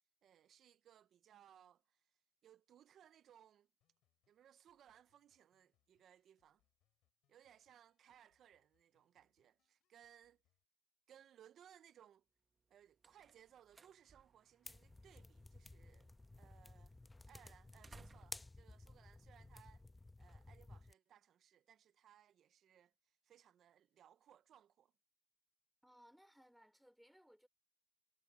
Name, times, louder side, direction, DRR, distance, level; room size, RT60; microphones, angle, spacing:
voice 1, 0.2-3.7 4.3-6.6 7.3-10.4 11.1-12.3 12.7-16.1 16.4-17.0 17.3-19.9 20.2-24.9, right 10 dB, 70° right, 0.4 m, -66 dB
sound 1, 3.8-10.6, left 14 dB, 85° left, 6.7 m, -89 dB
sound 2, 12.5-20.0, right 4 dB, 35° right, 1.1 m, -68 dB
sound 3, 14.7-20.9, left 2 dB, 15° left, 0.7 m, -56 dB
voice 2, 25.8-27.5, equal, ahead, 4.6 m, -65 dB
cardioid pair, 90°, 0 cm